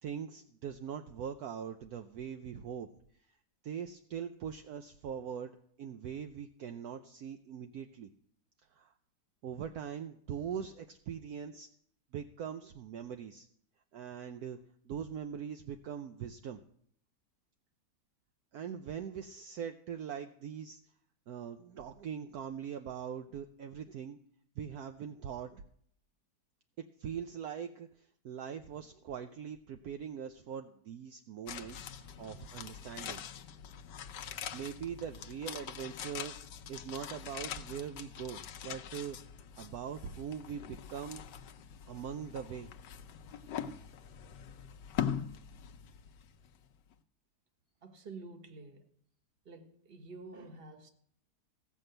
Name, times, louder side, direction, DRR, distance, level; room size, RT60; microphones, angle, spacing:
voice 1, 0.0-2.9 3.6-8.1 8.7-8.9 9.4-11.7 12.1-13.5 13.9-14.6 14.8-16.6 18.5-20.8 21.3-24.2 24.6-25.6 27.0-33.2 34.5-36.4 36.7-39.2 39.6-41.2 41.9-42.7, right 8 dB, 70° right, 1.1 m, -42 dB
sound 1, 31.5-46.6 46.9-47.0, left 9 dB, 80° left, 1.3 m, -43 dB
voice 2, 47.8-48.9 49.4-50.9, right 3 dB, 35° right, 1.3 m, -49 dB
16.5 x 5.5 x 7.8 m
omnidirectional pair, 1.8 m